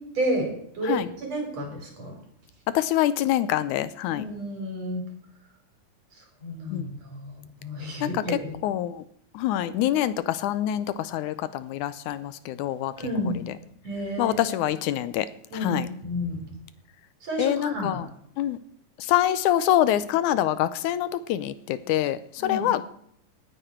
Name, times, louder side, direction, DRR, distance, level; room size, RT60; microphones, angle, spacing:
voice 1, 0.1-0.5 0.7-2.2 4.1-5.0 6.2-8.5 13.0-13.4 13.8-14.4 15.5-16.5 17.2-18.0 22.4-22.7, equal, 50° right, 2 dB, 4.9 m, -31 dB
voice 2, 2.7-4.2 6.7-6.9 8.0-8.2 8.6-9.0 9.3-12.9 14.2-15.3 15.6-15.9 17.4-18.1 18.4-18.6 19.0-22.9, left 12 dB, 75° left, 15 dB, 1.9 m, -25 dB
19.5 x 9.1 x 4.4 m, 0.71 s
omnidirectional pair, 3.8 m